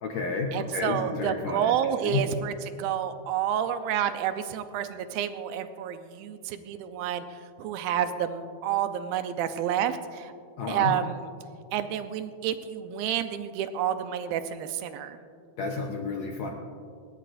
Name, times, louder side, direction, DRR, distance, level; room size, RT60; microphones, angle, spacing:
voice 1, 0.0-1.7 2.0-2.2 10.6-10.9 15.6-16.5, left 4 dB, 70° left, 1 dB, 1.7 m, -31 dB
voice 2, 0.5-10.3 10.7-11.3 11.7-15.2, right 9 dB, 85° right, 9 dB, 2.5 m, -29 dB
19.5 x 19.0 x 2.6 m, 2.2 s
omnidirectional pair, 4.2 m